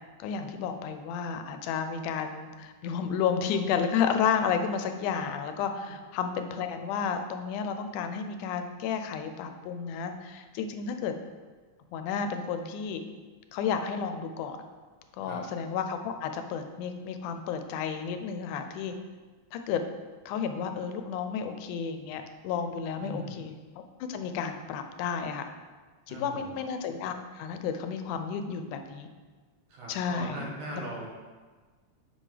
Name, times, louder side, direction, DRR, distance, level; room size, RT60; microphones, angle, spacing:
voice 1, 0.2-11.1 11.9-13.0 13.5-14.6 15.2-18.9 19.5-19.8 20.3-23.6 24.1-25.5 26.1-29.1 29.9-30.4, left 6 dB, 90° left, 7 dB, 2.1 m, -32 dB
voice 2, 23.0-23.3 26.1-26.6 29.7-31.1, right 1 dB, 75° right, -3 dB, 2.7 m, -40 dB
7.6 x 5.8 x 3.3 m, 1.4 s
omnidirectional pair, 3.5 m